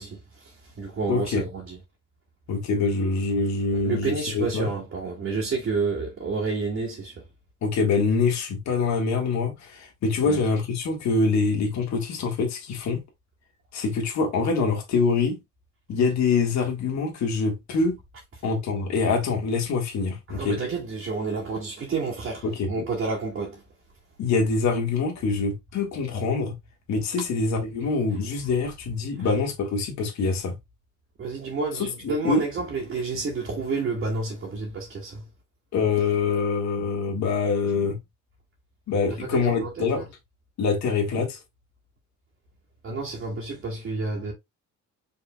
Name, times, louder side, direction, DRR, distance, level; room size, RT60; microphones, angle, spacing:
voice 1, 0.0-1.8 3.7-7.2 10.2-10.4 20.3-23.6 29.2-29.3 31.2-35.2 39.2-40.1 42.8-44.3, right 4 dB, 40° right, 2.0 m, -30 dB
voice 2, 1.1-1.4 2.5-4.7 7.6-13.0 13.7-15.4 15.9-18.0 18.4-20.6 22.4-22.7 24.2-26.5 26.9-30.5 32.0-32.4 35.7-38.0 38.9-40.0 40.6-41.4, left 4 dB, 60° left, 1.8 m, -25 dB
5.4 x 4.2 x 2.3 m
cardioid pair, 130°, 32 cm